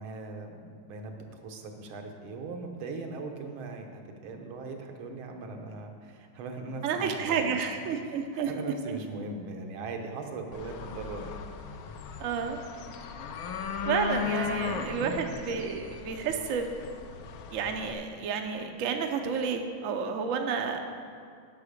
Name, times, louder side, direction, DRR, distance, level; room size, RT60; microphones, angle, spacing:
voice 1, 0.0-11.4 14.2-15.3, right 3 dB, 85° right, 3 dB, 1.8 m, -40 dB
voice 2, 6.8-8.5 12.2-12.6 13.9-16.8 17.5-20.8, right 6 dB, 65° right, 4 dB, 0.8 m, -30 dB
sound 1, 10.5-17.9, left 7 dB, 80° left, 1.4 m, -37 dB
8.5 x 5.9 x 6.5 m, 2.3 s
omnidirectional pair, 2.2 m